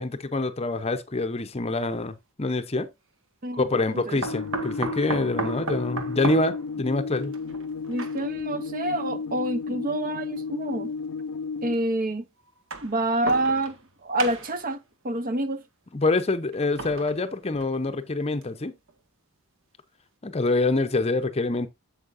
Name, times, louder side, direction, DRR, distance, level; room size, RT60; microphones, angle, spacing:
voice 1, 0.0-2.9 3.5-7.3 15.9-18.7 20.2-21.7, left 2 dB, 30° left, 0.7 m, -26 dB
sound 1, 1.8-1.9 4.2-8.5 9.5-9.6 10.7-10.8 12.5-13.9 14.2-14.7 16.5-17.9 18.4-18.5 18.9-19.0, right 3 dB, 60° right, 1.3 m, -35 dB
voice 2, 3.4-4.2 7.9-10.9 11.6-12.3 12.8-15.6, right 1 dB, 40° right, 0.7 m, -28 dB
sound 2, 4.2-11.7, left 4 dB, 70° left, 0.4 m, -33 dB
8.5 x 7.3 x 2.5 m
head